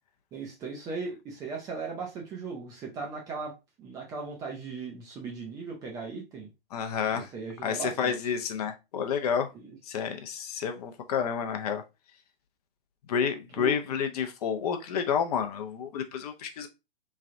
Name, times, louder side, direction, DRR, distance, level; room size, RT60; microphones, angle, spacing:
voice 1, 0.3-3.5 3.8-6.5 7.1-8.1 9.5-9.8 13.6-13.7, right 4 dB, 15° right, 0.4 m, -38 dB
voice 2, 6.7-7.3 7.6-9.5 9.8-11.8 13.1-16.7, left 7 dB, 40° left, 0.5 m, -30 dB
3.2 x 2.3 x 2.5 m
figure-of-eight pair, 110°, 29 cm